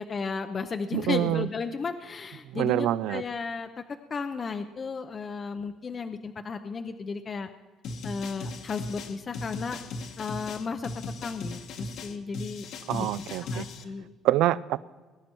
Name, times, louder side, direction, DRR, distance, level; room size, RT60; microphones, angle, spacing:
voice 1, 0.0-3.8 4.1-7.5 8.0-9.8 10.2-10.9 11.2-13.1 13.4-14.1, left 5 dB, 30° left, 7 dB, 0.6 m, -34 dB
voice 2, 0.9-1.5 2.5-3.2 12.9-13.7 14.2-14.8, right 14 dB, 85° right, 18 dB, 0.4 m, -26 dB
sound 1, 7.8-13.8, left 3 dB, 70° left, 1.2 m, -37 dB
21.0 x 10.5 x 4.5 m, 1.4 s
cardioid pair, 135°, 0 cm